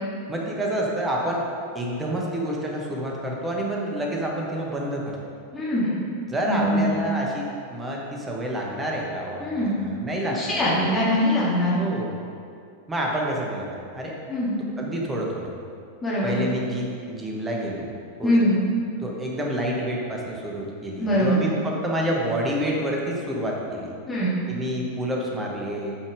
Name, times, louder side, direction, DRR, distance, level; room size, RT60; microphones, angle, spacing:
voice 1, 0.3-1.4 1.7-5.2 6.3-10.6 11.7-12.1 12.9-14.1 14.8-15.5 16.2-17.9 18.2-18.4 19.0-23.9 24.5-25.9, equal, 15° right, -2 dB, 1.5 m, -28 dB
voice 2, 5.5-6.0 6.5-6.8 9.4-9.8 10.3-11.8 14.3-14.5 16.0-16.4 18.2-18.6 21.0-21.4 24.1-24.4, equal, 15° left, -8 dB, 2.2 m, -22 dB
8.8 x 5.5 x 4.9 m, 2.4 s
figure-of-eight pair, 90°, 0 cm